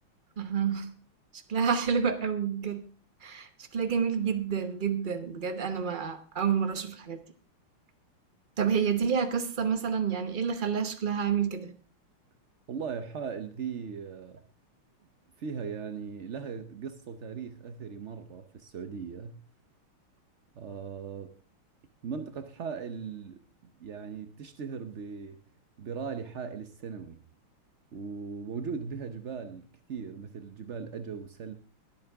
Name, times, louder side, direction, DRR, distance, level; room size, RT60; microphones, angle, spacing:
voice 1, 0.4-0.9 1.3-2.8 3.2-7.2 8.6-11.7, right 7 dB, 35° right, 0.8 m, -29 dB
voice 2, 12.7-14.4 15.4-19.4 20.6-21.3 22.0-25.4 25.8-27.2 27.9-31.5, right 6 dB, 85° right, 0.6 m, -38 dB
21.5 x 8.6 x 3.5 m
omnidirectional pair, 2.4 m